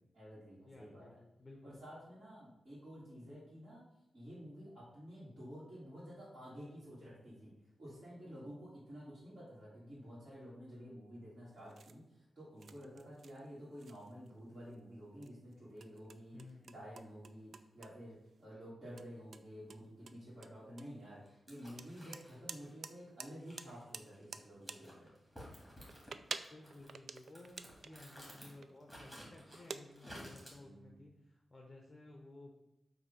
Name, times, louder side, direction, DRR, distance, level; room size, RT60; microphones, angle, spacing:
voice 1, 0.1-1.2 1.6-3.8 4.1-7.5 7.8-16.4 16.6-25.1 30.6-31.0, equal, 40° right, -12 dB, 2.3 m, -51 dB
voice 2, 0.6-1.8 16.3-16.9 26.5-32.5, left 2 dB, 20° left, 0 dB, 0.7 m, -56 dB
sound 1, 11.5-12.0 12.6-13.5 13.8-14.4 14.7-14.9 15.2-17.9 18.3-18.4 18.9-19.0 19.3-21.1 21.8-22.9 23.2-23.3 23.6-24.8 25.7-28.0 28.6-28.9 29.3-29.8, right 5 dB, 60° right, 0.3 m, -48 dB
sound 2, 21.2-22.8 23.4-26.1 26.4-28.5 28.8-30.5, equal, ahead, 2.0 m, -54 dB
8.0 x 2.7 x 5.7 m, 0.89 s
wide cardioid pair, 170°, 0 cm